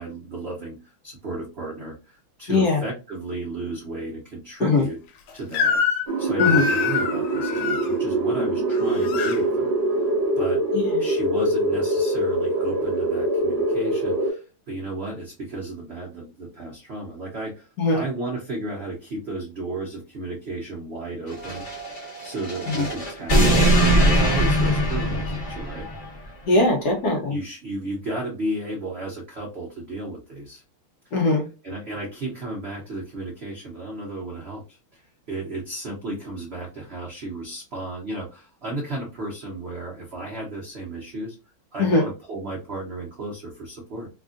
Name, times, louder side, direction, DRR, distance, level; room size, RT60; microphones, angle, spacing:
voice 1, 0.0-5.0 5.3-5.8 6.2-10.1 10.4-10.6 11.0-21.7 22.2-25.9 27.3-30.6 31.0-31.1 31.6-41.4 41.7-44.1, right 2 dB, 80° right, -3 dB, 0.5 m, -33 dB
voice 2, 2.5-2.8 4.6-4.9 6.4-6.7 10.7-11.0 17.8-18.0 22.7-22.9 26.5-27.4 31.1-31.5 41.8-42.1, left 2 dB, 65° left, 1 dB, 1.1 m, -21 dB
Crying sobbing / Screech, 5.5-6.1 6.4-7.9 8.7-9.4, left 6 dB, 90° left, 1.5 m, -24 dB
sound 1, 6.1-14.3, right 1 dB, 35° right, 1.2 m, -24 dB
sound 2, 21.3-26.1, right 1 dB, 30° left, 1.0 m, -21 dB
3.5 x 2.5 x 2.4 m, 0.31 s
omnidirectional pair, 2.3 m